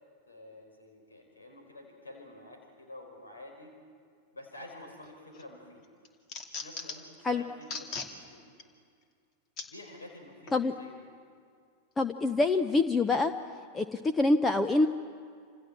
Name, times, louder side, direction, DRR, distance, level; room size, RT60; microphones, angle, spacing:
voice 1, 0.3-3.7 4.3-5.8 6.5-8.5 9.7-11.1, left 1 dB, 75° left, 3 dB, 5.2 m, -49 dB
sound 1, 5.0-5.4 5.8-7.1 7.6-8.1 8.6-8.7 9.6-9.7 10.5-10.6, left 4 dB, 35° left, 2.7 m, -39 dB
voice 2, 12.0-13.3 13.7-14.9, left 3 dB, 15° left, 10 dB, 0.9 m, -25 dB
28.5 x 27.0 x 7.5 m, 2.2 s
figure-of-eight pair, 90°, 0 cm